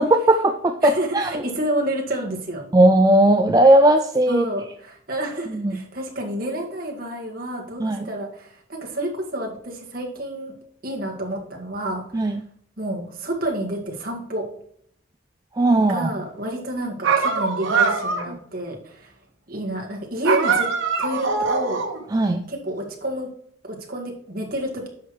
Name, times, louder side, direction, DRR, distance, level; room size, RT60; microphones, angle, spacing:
voice 1, 0.0-1.4 2.7-4.5 5.5-5.8 7.8-8.1 12.1-12.4 15.6-16.1 22.1-22.4, right 1 dB, 20° right, 6 dB, 0.3 m, -17 dB
voice 2, 0.8-2.7 4.3-10.5 10.8-12.4 12.8-14.4 15.9-19.1 19.5-20.7 21.0-21.9 22.5-23.3 23.6-24.9, right 1 dB, 45° right, 0 dB, 1.8 m, -29 dB
sound 1, 17.0-18.4 20.2-22.0, right 5 dB, 80° right, 1.3 m, -22 dB
10.0 x 6.5 x 3.1 m, 0.64 s
head